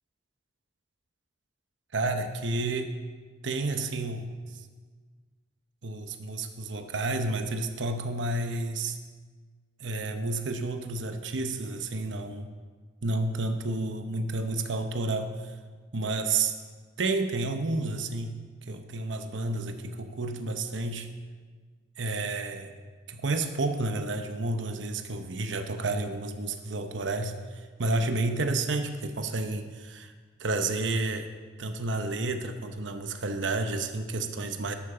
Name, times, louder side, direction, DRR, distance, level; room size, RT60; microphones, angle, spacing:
voice 1, 1.9-3.0 3.4-4.3 5.8-9.0 9.8-12.5 13.0-15.4 15.9-16.5 17.0-21.1 22.0-22.7 23.1-30.1 30.4-31.3 31.6-34.8, right 2 dB, 80° right, 7 dB, 0.9 m, -30 dB
12.0 x 8.6 x 6.8 m, 1.5 s
head